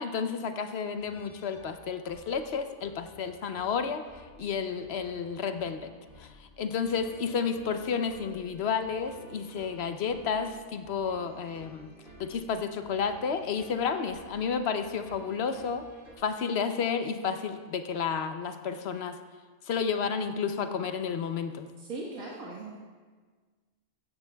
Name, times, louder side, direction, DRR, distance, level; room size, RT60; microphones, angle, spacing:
voice 1, 0.0-5.9 6.2-11.9 12.2-15.8 16.2-19.2 19.7-21.7, left 6 dB, 60° left, 8 dB, 0.8 m, -31 dB
sound 1, 1.0-16.2, right 1 dB, 40° right, 1.9 m, -53 dB
voice 2, 21.8-22.8, right 2 dB, 85° right, -5 dB, 1.9 m, -39 dB
16.0 x 14.0 x 2.3 m, 1.5 s
omnidirectional pair, 1.4 m